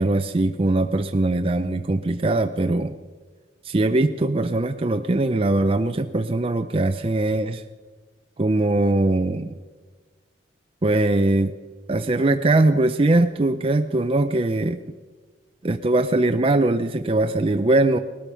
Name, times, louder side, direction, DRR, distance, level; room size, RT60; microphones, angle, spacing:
voice 1, 0.0-2.9 3.6-7.6 8.4-9.5 10.8-11.5 11.9-14.8 15.6-18.0, right 2 dB, 30° right, 7 dB, 0.5 m, -21 dB
19.0 x 12.5 x 5.6 m, 1.4 s
head